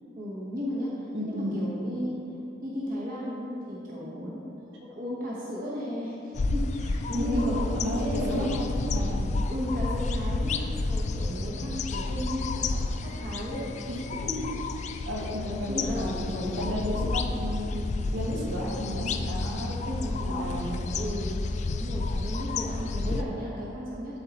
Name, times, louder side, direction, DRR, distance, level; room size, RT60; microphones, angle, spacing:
voice 1, 0.2-2.2 2.6-7.6 8.0-8.4 9.5-13.7 15.7-16.1 19.7-21.4 21.7-24.2, equal, 50° right, -6 dB, 1.2 m, -35 dB
voice 2, 1.1-1.7 7.1-9.2 13.9-14.6 14.9-17.8 18.1-19.8 20.2-20.8, equal, 80° right, -4 dB, 1.7 m, -32 dB
sound 1, 6.3-23.2, left 3 dB, 40° left, 0.3 m, -31 dB
12.0 x 4.3 x 4.1 m, 2.9 s
head